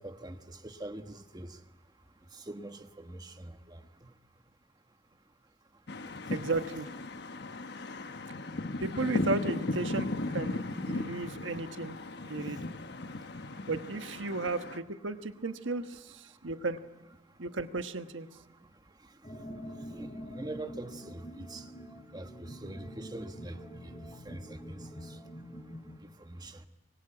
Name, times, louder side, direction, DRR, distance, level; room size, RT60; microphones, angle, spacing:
voice 1, 0.0-1.5 2.5-3.8 6.3-6.4 19.9-21.6 22.1-23.6 23.8-23.9 24.2-24.4 24.7-24.8 26.3-26.7, right 1 dB, 20° right, 1.3 m, -43 dB
sound 1, 5.9-14.8, left 2 dB, 60° left, 1.2 m, -36 dB
voice 2, 6.3-6.9 8.8-12.0 12.2-12.7 13.7-16.8 17.4-18.3, right 3 dB, 85° right, 1.3 m, -34 dB
sound 2, 19.2-26.0, equal, 30° left, 3.4 m, -45 dB
26.0 x 24.0 x 8.8 m
head